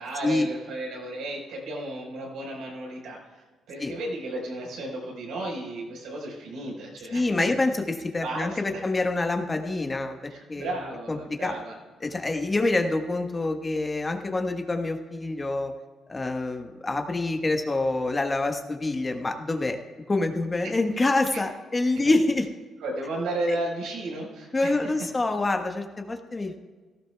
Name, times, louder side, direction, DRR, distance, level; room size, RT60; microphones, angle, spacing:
voice 1, 0.0-7.5 8.2-8.8 10.3-11.7 21.3-21.4 22.0-22.1 22.8-24.9, right 1 dB, 85° right, -1 dB, 4.5 m, -34 dB
voice 2, 7.1-10.7 11.1-11.5 12.0-15.7 16.1-19.8 20.1-22.5 23.5-23.6 24.5-26.6, left 2 dB, 25° left, 5 dB, 1.3 m, -26 dB
18.0 x 14.5 x 2.3 m, 1.3 s
cardioid pair, 90°, 0 cm